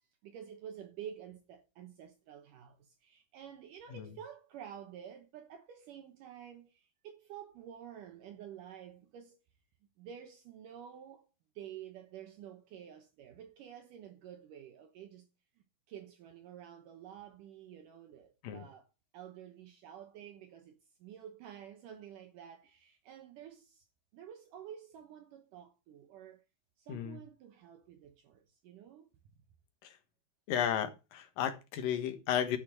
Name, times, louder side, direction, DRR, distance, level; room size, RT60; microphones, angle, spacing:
voice 1, 0.2-9.4 10.0-11.3 11.6-15.3 15.9-18.8 19.1-23.9 24.1-26.4 26.8-29.1, right 9 dB, 70° right, 2.5 m, -50 dB
voice 2, 26.9-27.2 29.8-30.0 30.5-32.6, left 9 dB, 75° left, 3.1 m, -34 dB
11.5 x 5.6 x 6.1 m
omnidirectional pair, 4.1 m